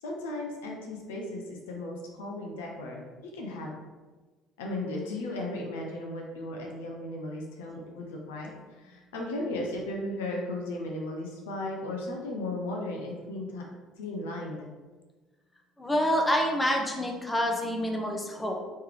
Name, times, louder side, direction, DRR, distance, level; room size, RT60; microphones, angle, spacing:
voice 1, 0.0-3.7 4.6-13.6 14.0-14.7, left 1 dB, 70° left, -1 dB, 0.6 m, -36 dB
voice 2, 15.8-18.6, equal, 15° left, 1 dB, 0.6 m, -27 dB
3.2 x 3.1 x 3.3 m, 1.3 s
figure-of-eight pair, 55°, 0 cm